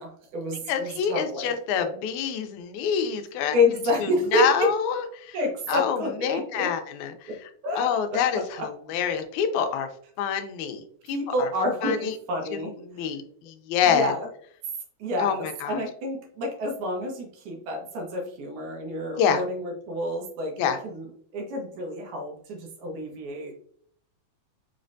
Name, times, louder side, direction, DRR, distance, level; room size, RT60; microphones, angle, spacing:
voice 1, 0.0-1.5 1.8-1.9 3.5-4.7 5.3-6.7 7.3-7.4 7.6-7.9 8.6-8.7 11.1-12.7 13.9-14.3 15.0-21.1 21.3-23.5, left 1 dB, 85° right, 1 dB, 2.5 m, -28 dB
voice 2, 0.7-3.6 4.0-5.4 5.7-7.5 7.8-9.9 10.2-10.8 11.1-11.5 11.8-12.2 12.5-14.1 15.2-15.8 19.2-19.4 20.6-20.8, left 8 dB, 90° left, 8 dB, 2.0 m, -27 dB
5.6 x 3.2 x 2.6 m, 0.62 s
omnidirectional pair, 3.3 m